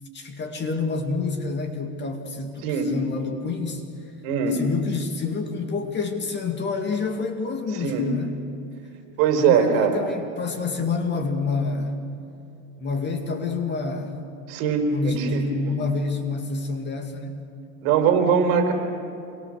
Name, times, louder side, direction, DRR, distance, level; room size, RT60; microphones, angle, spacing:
voice 1, 0.1-3.8 4.5-8.3 9.4-12.0 12.8-14.1 14.9-17.4, left 4 dB, 25° left, 4 dB, 2.3 m, -28 dB
voice 2, 4.2-4.6 7.8-8.1 9.2-10.0 14.5-15.7 17.8-18.7, right 6 dB, 55° right, 4 dB, 4.8 m, -21 dB
28.0 x 23.5 x 6.7 m, 2.8 s
supercardioid pair, 140°, 42 cm